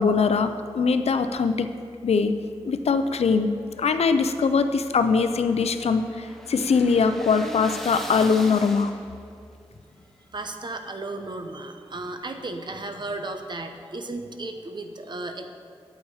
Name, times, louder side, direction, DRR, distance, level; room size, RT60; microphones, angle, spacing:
voice 1, 0.0-1.7 2.0-2.3 2.6-3.5 3.8-8.9, left 5 dB, 90° left, 9 dB, 0.5 m, -22 dB
sound 1, 4.4-9.3, equal, 5° left, 0.9 m, -40 dB
voice 2, 10.3-15.5, right 2 dB, 45° right, 6 dB, 0.8 m, -34 dB
8.7 x 8.3 x 4.8 m, 2.2 s
wide cardioid pair, 95°, 10 cm